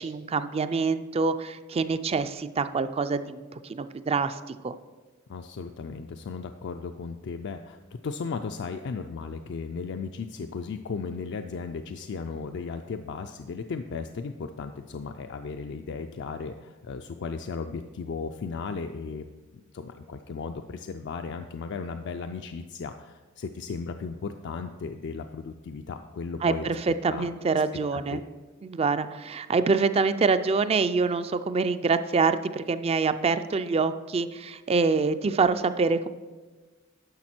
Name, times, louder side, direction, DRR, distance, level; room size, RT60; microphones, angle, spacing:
voice 1, 0.0-4.7 26.4-28.2 28.6-36.1, right 4 dB, 30° right, 12 dB, 0.4 m, -26 dB
voice 2, 5.3-19.2 19.7-26.7 27.1-27.3 27.9-28.2, left 5 dB, 55° left, 6 dB, 0.4 m, -36 dB
10.5 x 6.6 x 4.4 m, 1.3 s
head